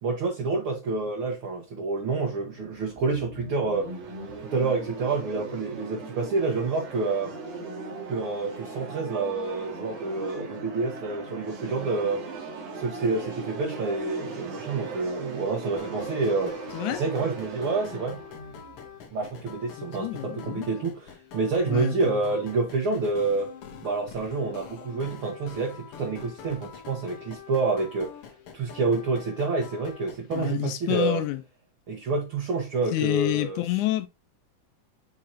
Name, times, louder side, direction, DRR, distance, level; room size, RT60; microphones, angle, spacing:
voice 1, 0.0-4.0 4.5-7.4 8.1-12.3 12.7-16.6 16.9-18.2 19.1-21.0 21.3-23.6 23.8-28.2 28.5-31.2 31.9-33.6, right 3 dB, 50° right, 1.9 m, -28 dB
sound 1, 2.0-19.8, right 3 dB, 70° right, 3.9 m, -39 dB
sound 2, 15.8-30.5, left 7 dB, 60° left, 1.6 m, -45 dB
voice 2, 19.8-20.7 21.7-22.2 30.3-31.4 32.9-34.1, left 16 dB, 85° left, 2.1 m, -28 dB
7.5 x 4.7 x 2.7 m
omnidirectional pair, 3.6 m